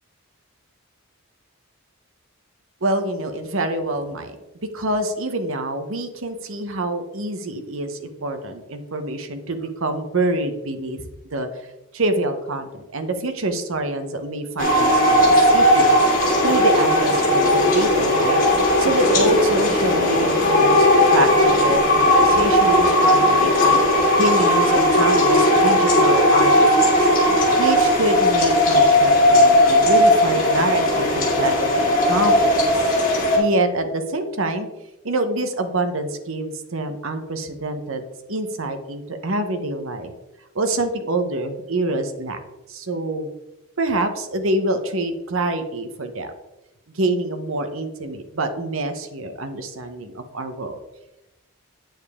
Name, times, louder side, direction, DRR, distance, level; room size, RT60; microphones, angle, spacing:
voice 1, 2.8-4.4 4.7-11.0 11.3-11.5 11.9-16.0 16.4-18.4 18.8-20.9 21.1-23.8 24.2-26.5 26.8-27.1 27.6-32.9 33.3-34.7 35.0-38.0 38.3-40.1 40.5-42.4 42.7-43.3 43.8-46.3 46.9-50.8, right 2 dB, 65° right, 7 dB, 0.9 m, -26 dB
sound 1, 14.6-33.4, left 1 dB, 40° left, 2.7 m, -17 dB
9.1 x 6.9 x 3.6 m, 0.95 s
head